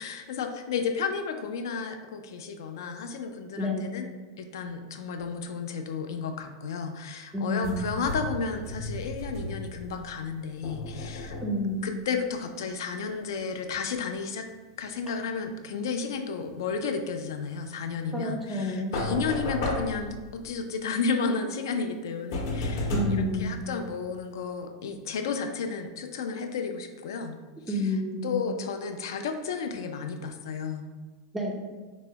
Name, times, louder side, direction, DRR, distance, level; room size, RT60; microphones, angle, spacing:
voice 1, 0.0-4.1 4.4-11.4 11.8-14.5 14.8-27.4 27.7-27.8 28.2-30.9, left 5 dB, 75° left, 6 dB, 0.3 m, -32 dB
voice 2, 3.6-3.9 7.3-7.9 11.4-11.9 18.1-18.9 22.9-23.6 27.7-28.4 31.3-31.6, left 1 dB, 5° right, -1 dB, 0.3 m, -29 dB
sound 1, 7.6-10.1 10.6-11.8 18.9-20.6 22.3-24.3, left 1 dB, 50° left, 0.7 m, -33 dB
4.5 x 2.0 x 2.8 m, 1.3 s
supercardioid pair, 175°, 2 cm